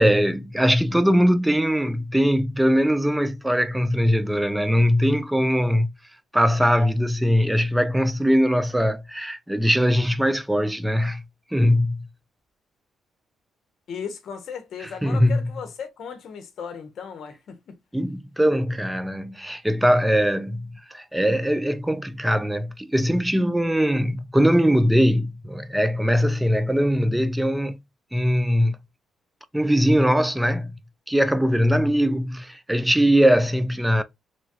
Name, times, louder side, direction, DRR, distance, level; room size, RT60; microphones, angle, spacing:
voice 1, 0.0-5.9 6.3-11.2 11.5-12.1 14.8-15.4 17.9-27.8 28.1-28.8 29.5-30.8 31.1-34.0, equal, 5° right, 0.3 m, -21 dB
voice 2, 13.9-17.8, left 7 dB, 65° left, 0.7 m, -36 dB
3.0 x 2.2 x 2.7 m
cardioid pair, 90°, 0 cm